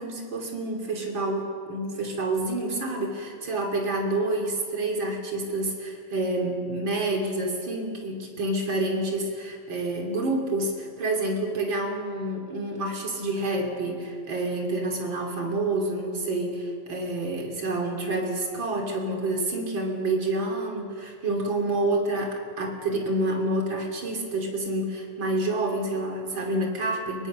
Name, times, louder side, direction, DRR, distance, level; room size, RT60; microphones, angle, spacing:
voice 1, 0.0-27.3, right 2 dB, 90° right, 1 dB, 3.7 m, -28 dB
25.0 x 23.0 x 6.4 m, 2.3 s
omnidirectional pair, 2.0 m